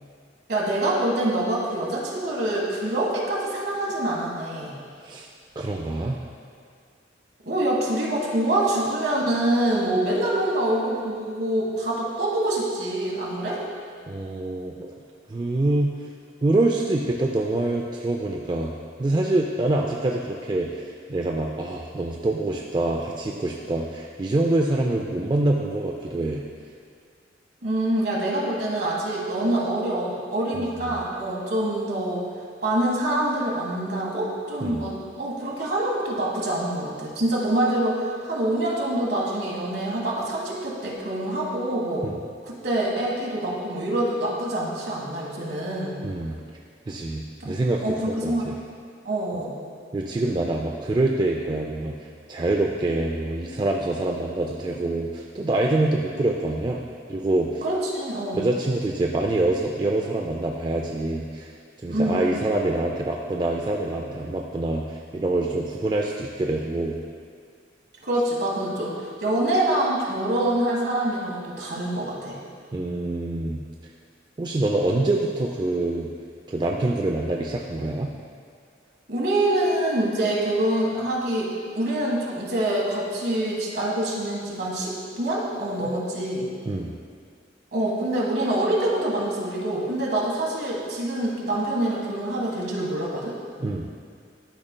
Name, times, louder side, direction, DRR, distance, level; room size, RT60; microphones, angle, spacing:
voice 1, 0.5-4.8 7.4-13.6 27.6-32.2 32.6-42.1 42.4-46.0 47.4-47.5 47.8-48.4 49.0-49.6 57.6-58.5 61.9-62.3 68.0-72.4 79.1-86.4 87.7-93.3, right 1 dB, 60° right, -4 dB, 1.5 m, -25 dB
voice 2, 5.6-6.2 14.1-15.0 15.3-16.0 16.4-18.7 19.0-26.4 30.5-30.7 34.6-34.8 42.0-42.2 46.0-46.4 46.9-48.5 49.9-56.8 57.1-57.6 58.3-61.5 61.8-67.0 72.7-73.6 74.4-76.1 76.5-78.1 86.6-86.9 93.6-93.9, right 2 dB, 25° right, 0 dB, 0.3 m, -25 dB
12.0 x 5.0 x 2.2 m, 2.2 s
head